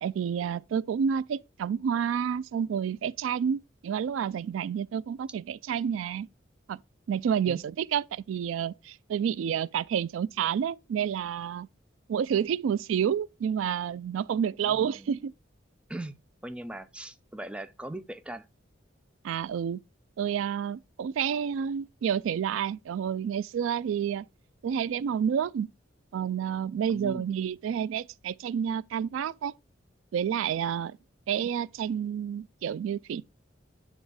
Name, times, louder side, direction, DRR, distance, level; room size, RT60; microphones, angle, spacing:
voice 1, 0.0-6.3 6.7-6.8 7.1-11.7 12.1-15.3 19.2-19.8 20.2-24.2 24.6-25.7 26.1-29.5 30.1-31.0 31.3-33.2, right 8 dB, 90° right, 0.3 m, -29 dB
voice 2, 14.6-15.1 15.9-16.2 16.4-18.4 26.9-27.3, right 1 dB, 5° right, 0.5 m, -40 dB
9.3 x 3.6 x 4.7 m
head